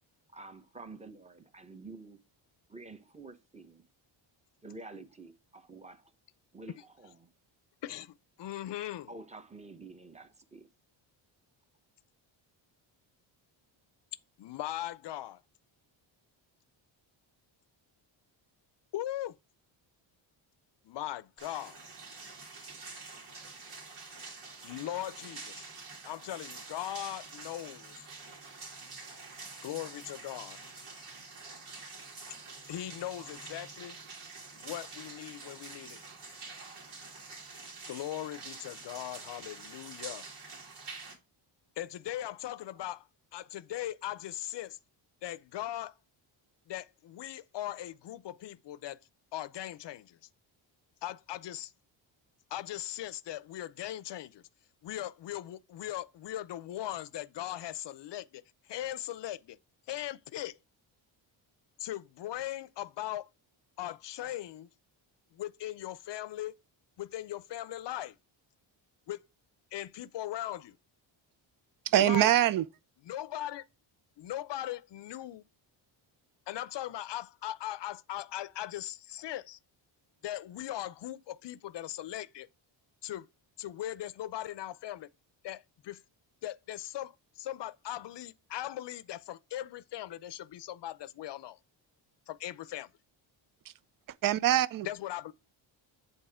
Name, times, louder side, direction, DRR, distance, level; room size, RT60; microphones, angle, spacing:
voice 1, 0.3-2.2 2.7-3.8 4.6-6.0 6.5-7.3 9.1-10.7, right 3 dB, 15° right, 1.0 m, -49 dB
voice 2, 7.8-9.1 14.4-15.4 18.9-19.3 20.8-21.8 24.6-25.7 26.0-28.1 29.6-30.6 32.7-34.0 34.5-36.0 37.9-40.3 41.8-43.1 43.3-44.8 45.2-45.9 46.7-49.0 49.3-50.2 51.0-51.7 52.5-54.4 54.8-58.4 58.7-59.6 59.9-60.6 61.8-63.3 63.8-64.7 65.3-66.6 67.0-68.2 69.1-69.2 69.7-70.8 72.0-72.3 73.0-73.6 74.2-75.4 76.5-79.6 80.2-82.5 83.0-83.3 83.6-85.1 85.4-86.0 86.4-91.6 92.3-92.9 94.8-95.3, left 13 dB, 60° left, 0.6 m, -39 dB
sound 1, 21.4-41.2, right 4 dB, 90° right, 2.8 m, -47 dB
voice 3, 71.9-72.6 94.2-94.9, right 13 dB, 45° right, 0.5 m, -24 dB
7.9 x 3.9 x 4.9 m
cardioid pair, 95°, 49 cm